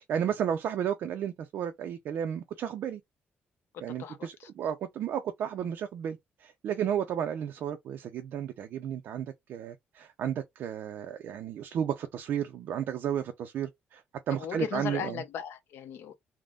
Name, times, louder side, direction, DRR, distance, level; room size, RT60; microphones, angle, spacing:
voice 1, 0.1-3.0 3.8-15.2, right 9 dB, 60° right, 0.4 m, -33 dB
voice 2, 4.0-4.5 14.3-16.1, left 8 dB, 70° left, 0.7 m, -37 dB
3.4 x 2.1 x 2.3 m
cardioid pair, 165°, 4 cm